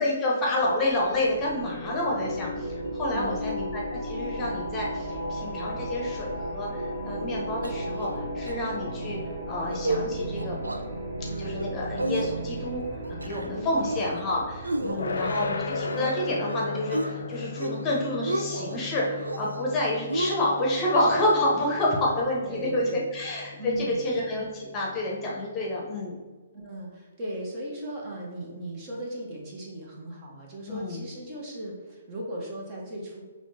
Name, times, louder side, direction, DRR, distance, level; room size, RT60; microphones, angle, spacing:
voice 1, 0.0-9.2 9.5-10.6 11.4-26.2 30.7-31.0, left 1 dB, 20° left, -3 dB, 0.9 m, -29 dB
sound 1, 0.7-16.2, equal, 50° right, 1.3 m, -35 dB
voice 2, 3.1-3.4 13.5-13.9 14.8-15.4 22.4-23.0 23.6-24.1 26.5-33.2, right 1 dB, 25° right, -2 dB, 1.0 m, -37 dB
sound 2, 7.6-8.2 8.5-8.6 8.9-9.2 9.6-10.0 10.4-10.8 11.2-11.7 12.0-12.7 13.0-13.5 13.8-14.2 14.6-16.2 16.5-17.1 17.5-17.9 18.1-18.8 19.2-19.7 20.1-21.4, right 1 dB, 75° right, 0.5 m, -32 dB
sound 3, 15.0-25.9, left 3 dB, 60° left, 0.4 m, -37 dB
6.2 x 3.1 x 2.8 m, 1.4 s
figure-of-eight pair, 125°, 0 cm